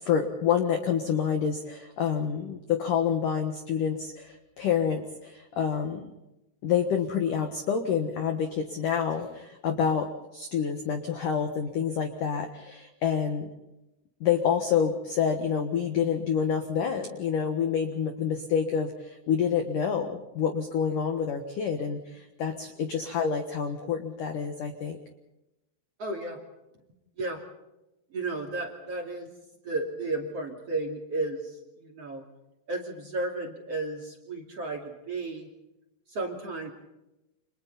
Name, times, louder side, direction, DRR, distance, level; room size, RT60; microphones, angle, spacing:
voice 1, 0.0-6.1 6.6-13.5 14.2-25.0, left 7 dB, 65° left, 5 dB, 2.1 m, -28 dB
voice 2, 26.0-26.4 27.2-27.4 28.1-29.3 29.6-32.2 32.7-35.5 36.1-36.7, right 2 dB, 40° right, 0 dB, 2.8 m, -33 dB
30.0 x 27.0 x 4.2 m, 0.94 s
omnidirectional pair, 5.8 m